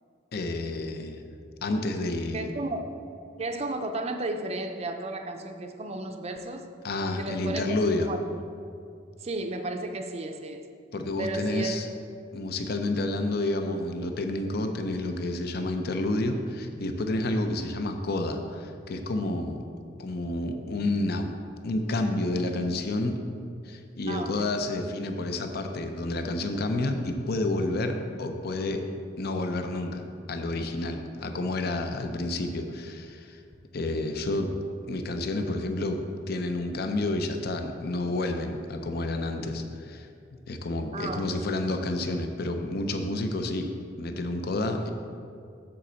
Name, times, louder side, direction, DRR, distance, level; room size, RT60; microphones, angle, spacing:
voice 1, 0.3-1.2 1.6-2.5 6.8-8.1 10.9-11.9 12.3-19.6 20.0-21.3 21.6-23.2 23.6-28.8 29.2-33.4 33.7-34.5 34.9-36.0 36.3-40.1 40.5-43.7 44.0-44.9, left 2 dB, 55° left, 6 dB, 0.6 m, -29 dB
voice 2, 2.3-2.8 3.4-6.7 7.2-8.2 9.2-10.7 11.2-11.8 24.1-24.5 40.9-41.5, right 2 dB, 35° right, 6 dB, 0.5 m, -33 dB
7.7 x 4.2 x 6.9 m, 2.4 s
head